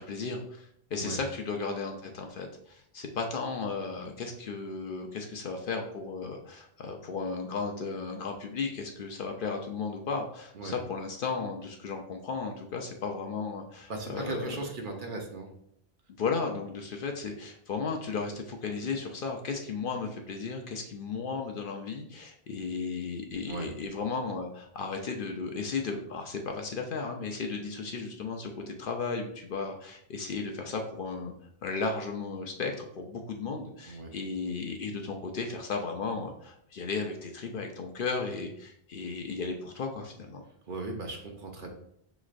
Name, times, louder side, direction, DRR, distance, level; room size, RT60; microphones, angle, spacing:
voice 1, 0.0-14.5 16.2-31.3 31.6-40.4, left 4 dB, 60° left, 3 dB, 0.7 m, -35 dB
voice 2, 13.9-15.5 23.5-23.7 33.9-34.1 40.7-41.7, right 3 dB, 55° right, 2 dB, 0.8 m, -37 dB
6.1 x 3.1 x 2.4 m, 0.71 s
omnidirectional pair, 1.1 m